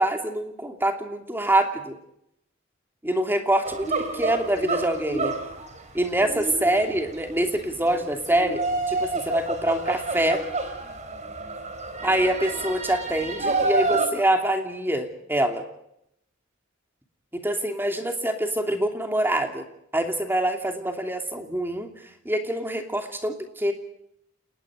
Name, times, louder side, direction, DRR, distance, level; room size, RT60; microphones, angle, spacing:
voice 1, 0.0-2.0 3.0-5.3 5.9-8.6 8.9-10.4 12.0-15.6 17.3-19.6 19.9-21.9 22.2-23.7, right 1 dB, 10° right, 5 dB, 2.9 m, -25 dB
sound 1, 3.6-14.1, right 3 dB, 35° right, 4.1 m, -29 dB
29.5 x 19.5 x 5.1 m, 0.77 s
head